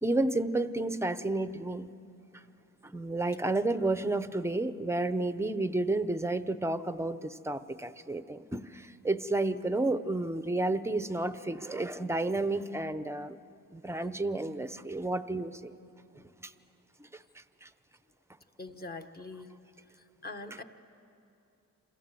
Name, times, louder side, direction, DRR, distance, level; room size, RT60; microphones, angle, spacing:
voice 1, 0.0-1.9 2.8-13.4 13.7-15.7 16.2-16.5 17.0-17.1 17.6-17.7, right 2 dB, 10° right, 12 dB, 0.6 m, -31 dB
voice 2, 18.6-19.5 19.9-20.6, left 3 dB, 30° left, 6 dB, 1.2 m, -43 dB
28.5 x 27.0 x 7.6 m, 2.7 s
wide cardioid pair, 155°, 34 cm